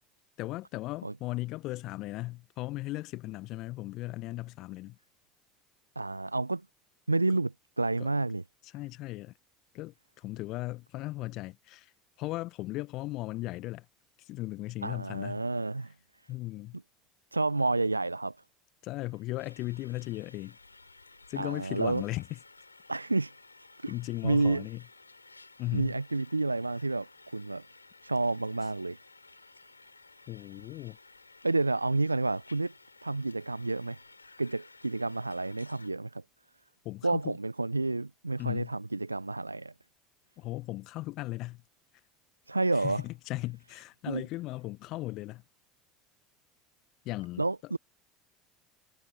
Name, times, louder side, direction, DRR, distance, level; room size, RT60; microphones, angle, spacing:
voice 1, 0.4-5.0 8.0-8.1 8.6-9.3 9.7-11.9 12.2-13.8 14.2-15.4 16.3-16.8 18.8-20.6 21.3-22.4 23.9-24.8 25.6-26.0 30.3-31.0 36.8-37.3 38.4-38.7 40.4-41.6 42.7-45.4 47.0-47.4, left 18 dB, 50° left, 1.0 m, -37 dB
voice 2, 6.0-6.6 7.1-8.4 14.8-15.9 17.3-18.4 21.4-22.0 22.9-23.3 23.8-23.9 24.2-24.7 25.7-27.6 28.0-29.0 31.4-32.7 33.0-34.0 34.4-36.2 37.0-39.7 42.5-43.0 44.1-44.2 47.4-47.8, right 2 dB, 90° right, 0.5 m, -30 dB
sound 1, 19.4-35.9, left 3 dB, 90° left, 3.2 m, -56 dB
figure-of-eight pair, 70°, 0 cm